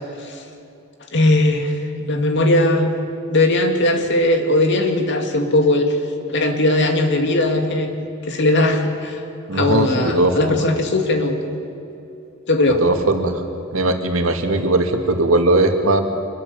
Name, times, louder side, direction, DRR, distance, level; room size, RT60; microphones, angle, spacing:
voice 1, 1.1-1.8 2.1-2.9 3.3-6.0 6.3-7.9 8.3-9.2 9.5-11.4 12.5-12.8, left 1 dB, 60° left, 4 dB, 2.6 m, -18 dB
voice 2, 9.5-10.6 12.8-13.4 13.7-16.0, right 2 dB, 85° right, 4 dB, 2.3 m, -18 dB
25.5 x 21.5 x 7.2 m, 2.8 s
head